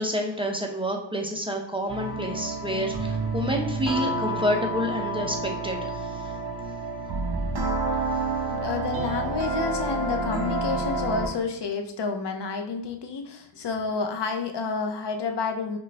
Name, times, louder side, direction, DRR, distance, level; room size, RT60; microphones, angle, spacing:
voice 1, 0.0-5.9 6.2-6.3, equal, 10° right, 0 dB, 0.6 m, -28 dB
sound 1, 1.9-11.4, right 2 dB, 75° right, 1.0 m, -29 dB
voice 2, 8.4-15.8, left 5 dB, 65° left, 4 dB, 0.7 m, -30 dB
6.0 x 2.3 x 3.3 m, 0.80 s
wide cardioid pair, 130°, 45 cm